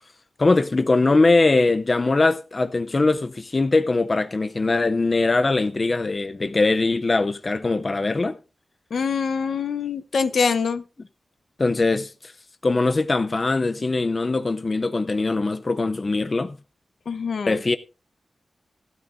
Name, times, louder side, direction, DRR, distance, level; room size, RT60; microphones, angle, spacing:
voice 1, 0.4-8.4 11.6-12.3 12.6-16.6 17.5-17.8, left 3 dB, 30° left, 0.5 m, -21 dB
voice 2, 8.9-10.8 17.1-17.6, left 5 dB, 70° left, 0.8 m, -24 dB
16.0 x 12.0 x 2.5 m
wide cardioid pair, 155°, 0 cm